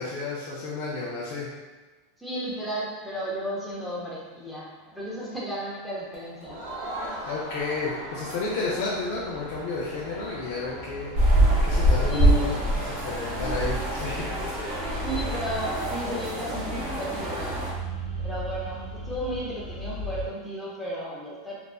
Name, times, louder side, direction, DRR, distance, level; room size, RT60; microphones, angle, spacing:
voice 1, 0.0-1.5 7.3-11.1 11.6-12.5 13.0-14.3, left 3 dB, 55° left, -6 dB, 0.5 m, -31 dB
voice 2, 2.2-6.6 12.1-12.5 15.0-17.6 18.2-21.6, equal, ahead, -6 dB, 0.6 m, -33 dB
sound 1, 4.8-20.3, right 1 dB, 25° left, 0.9 m, -39 dB
Crowd, 6.4-11.7, right 1 dB, 85° right, 0.8 m, -39 dB
sound 2, 11.2-17.7, right 1 dB, 50° right, 0.9 m, -25 dB
2.6 x 2.2 x 2.3 m, 1.3 s
supercardioid pair, 160°, 0 cm